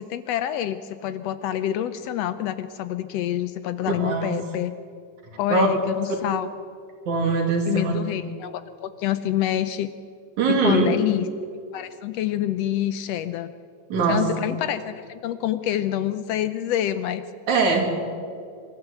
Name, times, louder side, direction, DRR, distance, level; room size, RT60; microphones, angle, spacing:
voice 1, 0.0-4.7 5.4-6.5 7.7-9.9 10.5-11.3 11.7-13.5 14.1-17.2, left 12 dB, 75° left, 13 dB, 1.6 m, -27 dB
voice 2, 3.8-4.4 5.5-5.7 7.1-8.0 10.4-10.9 13.9-14.2 17.5-17.9, right 4 dB, 90° right, 2 dB, 4.1 m, -21 dB
25.0 x 13.0 x 8.1 m, 2.3 s
omnidirectional pair, 3.3 m